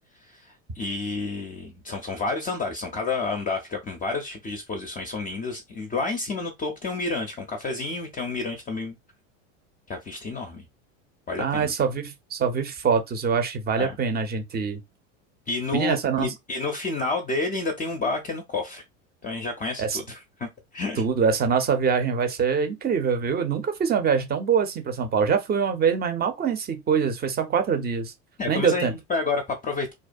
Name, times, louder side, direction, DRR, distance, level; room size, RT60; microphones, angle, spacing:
voice 1, 0.3-8.9 9.9-10.6 11.3-11.7 13.8-14.0 15.5-18.8 19.2-21.0 28.4-29.9, left 3 dB, 20° left, 0.5 m, -30 dB
voice 2, 11.4-14.8 15.7-16.3 19.8-20.0 21.0-28.1 28.5-28.9, right 6 dB, 25° right, 0.6 m, -24 dB
2.4 x 2.1 x 2.5 m
hypercardioid pair, 85°, 39 cm